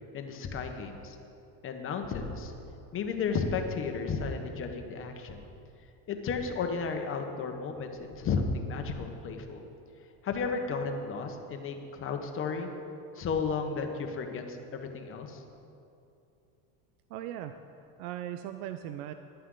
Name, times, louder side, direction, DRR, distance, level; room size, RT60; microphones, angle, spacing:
voice 1, 0.1-1.2 1.6-2.5 2.9-5.5 6.1-9.6 10.2-12.7 13.1-15.4, left 5 dB, 30° left, 5 dB, 1.1 m, -33 dB
voice 2, 17.1-17.6 18.0-19.1, right 11 dB, 80° right, 9 dB, 0.7 m, -38 dB
17.5 x 11.0 x 3.9 m, 2.7 s
cardioid pair, 155°, 43 cm